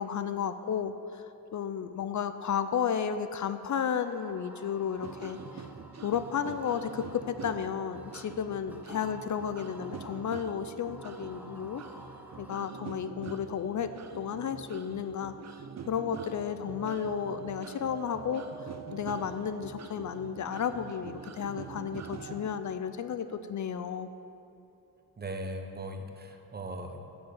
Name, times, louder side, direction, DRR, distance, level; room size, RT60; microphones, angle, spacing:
voice 1, 0.0-5.6 6.0-11.8 12.4-15.4 15.9-24.1, left 8 dB, 55° left, 11 dB, 0.5 m, -33 dB
sound 1, 3.9-12.5, equal, 5° right, 1.3 m, -53 dB
sound 2, 5.0-22.5, right 6 dB, 45° right, 0.7 m, -44 dB
voice 2, 25.2-27.0, right 1 dB, 25° right, 5 dB, 1.0 m, -38 dB
10.5 x 6.9 x 8.0 m, 2.8 s
wide cardioid pair, 125°, 36 cm